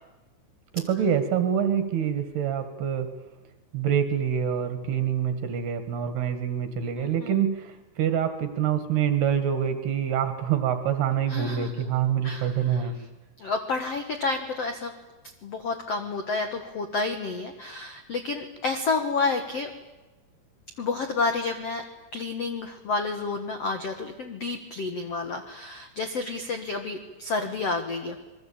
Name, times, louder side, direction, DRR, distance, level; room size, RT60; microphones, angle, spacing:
voice 1, 0.7-3.1 3.7-13.0, right 8 dB, 60° right, 8 dB, 3.7 m, -26 dB
voice 2, 7.0-7.4 11.3-11.8 12.2-12.9 13.4-14.9 15.4-19.7 20.8-21.8 22.1-28.2, left 3 dB, 90° left, 6 dB, 1.3 m, -30 dB
27.0 x 22.0 x 8.8 m, 1.1 s
omnidirectional pair, 5.5 m